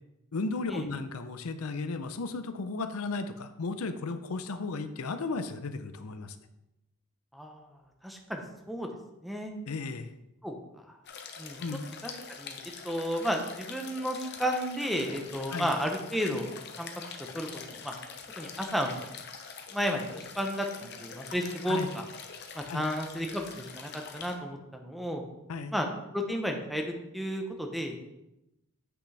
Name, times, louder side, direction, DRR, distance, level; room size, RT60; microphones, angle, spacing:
voice 1, 0.3-6.3 9.7-10.1 11.6-11.8 15.5-15.7 21.7-21.9 22.7-22.9 25.5-25.7, left 3 dB, 80° left, 10 dB, 0.6 m, -35 dB
voice 2, 7.3-7.7 8.0-8.9 9.2-9.5 10.4-10.6 11.4-11.6 12.0-12.1 12.4-12.6 12.8-16.5 16.8-16.9 17.3-17.9 18.4-19.0 19.7-22.0 22.5-25.2 25.7-25.9 26.1-28.1, equal, ahead, 3 dB, 0.8 m, -32 dB
sound 1, 11.0-24.4, left 5 dB, 50° left, 0.8 m, -44 dB
8.3 x 6.0 x 3.3 m, 0.89 s
head